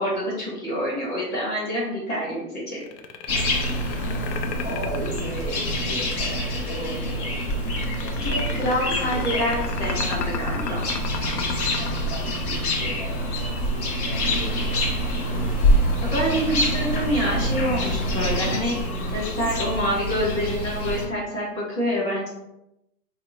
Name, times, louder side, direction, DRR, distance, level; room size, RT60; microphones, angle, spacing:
voice 1, 0.0-2.8 8.2-10.8 16.0-18.8 19.1-22.3, equal, 20° left, -6 dB, 1.0 m, -26 dB
sound 1, 2.8-6.0 7.4-12.9, left 7 dB, 80° left, 0.6 m, -33 dB
sound 2, 3.3-21.1, equal, 60° left, 1.0 m, -26 dB
voice 2, 4.6-9.5 11.7-14.9 15.2-15.7, right 1 dB, 5° right, -10 dB, 0.4 m, -36 dB
2.8 x 2.1 x 3.7 m, 0.88 s
hypercardioid pair, 145°, 49 cm